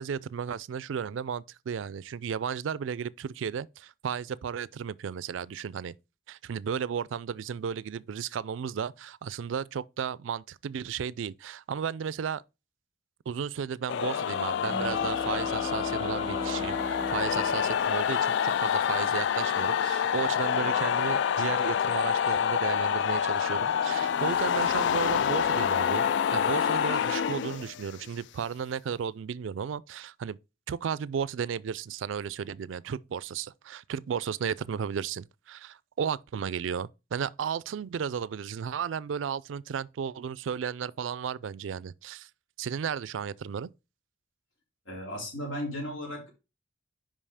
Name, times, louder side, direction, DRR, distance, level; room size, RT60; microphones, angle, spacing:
voice 1, 0.0-5.9 6.3-12.4 13.3-26.0 26.3-30.4 30.7-42.3 42.6-43.7, right 7 dB, 90° right, 0.4 m, -34 dB
sound 1, 13.9-28.1, left 8 dB, 65° left, 0.3 m, -27 dB
Bowed string instrument, 14.5-19.1, left 2 dB, 35° right, 1.8 m, -37 dB
voice 2, 44.8-46.3, equal, 90° left, 3.3 m, -35 dB
5.5 x 5.3 x 4.9 m
head